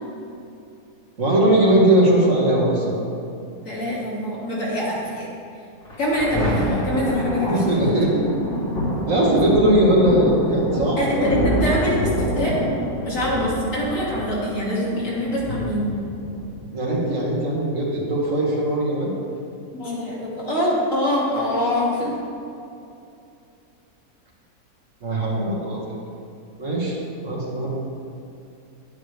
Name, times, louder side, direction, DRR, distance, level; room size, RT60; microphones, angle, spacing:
voice 1, 1.2-3.0 7.5-8.2 9.1-11.3 16.7-19.1 25.0-26.0 26.6-27.7, right 1 dB, 55° right, -4 dB, 2.1 m, -20 dB
voice 2, 3.6-5.3 6.0-8.0 11.0-12.5 13.0-15.9 19.7-22.1, equal, 55° left, -6 dB, 2.7 m, -24 dB
Thunder, 5.8-16.8 17.5-17.6, left 1 dB, 85° left, 2.8 m, -26 dB
9.7 x 9.6 x 3.4 m, 2.7 s
omnidirectional pair, 1.7 m